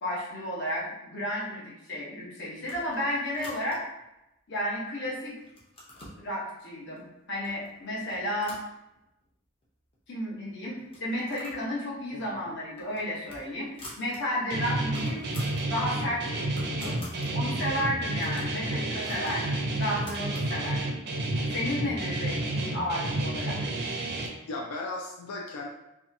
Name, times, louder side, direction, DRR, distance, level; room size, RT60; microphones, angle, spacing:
voice 1, 0.0-3.8 4.5-5.3 6.2-8.6 10.1-15.2 15.6-17.0 17.3-21.0 21.5-23.6, left 1 dB, 55° left, -5 dB, 0.9 m, -32 dB
sound 1, 2.6-4.0 4.6-5.1 5.4-6.2 7.0-7.1 7.4-7.7 8.0-9.3 9.6-9.7 9.9-10.0 10.8-11.7 12.0-12.2 12.6-14.2 14.5-14.6 14.8-15.7 16.1-17.3 17.8-20.5, left 1 dB, 25° left, 0.6 m, -48 dB
voice 2, 12.1-12.6 17.4-17.5 24.5-25.7, left 2 dB, 80° left, 0 dB, 0.4 m, -37 dB
Guitar, 14.5-24.3, right 2 dB, 50° right, 0.4 m, -30 dB
2.7 x 2.3 x 2.6 m, 0.90 s
head